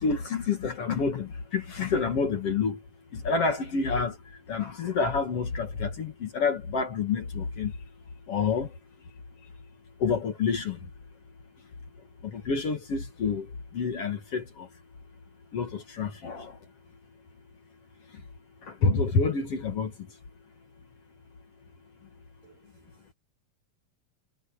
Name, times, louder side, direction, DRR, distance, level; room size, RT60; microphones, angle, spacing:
voice 1, 0.0-2.8 3.1-4.2 4.5-7.7 8.3-8.7 10.0-10.8 12.2-13.5 13.7-14.7 15.5-16.6 18.7-19.9, left 5 dB, 50° left, 2.5 m, -28 dB
voice 2, 22.4-23.1, right 2 dB, 75° right, 7.9 m, -60 dB
omnidirectional pair, 3.8 m